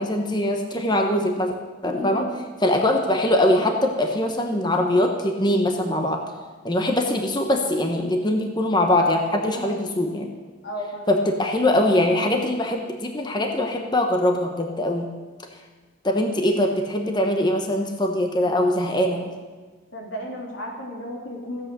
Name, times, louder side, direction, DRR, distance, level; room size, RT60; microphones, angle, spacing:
voice 1, 0.0-1.6 1.8-2.2 2.6-6.2 6.6-10.3 11.1-15.1 16.0-19.3, left 1 dB, 20° left, 4 dB, 1.1 m, -22 dB
voice 2, 1.9-2.4 9.5-9.8 10.6-11.2 19.9-21.7, equal, 70° left, -1 dB, 3.3 m, -34 dB
16.0 x 8.5 x 6.7 m, 1.4 s
head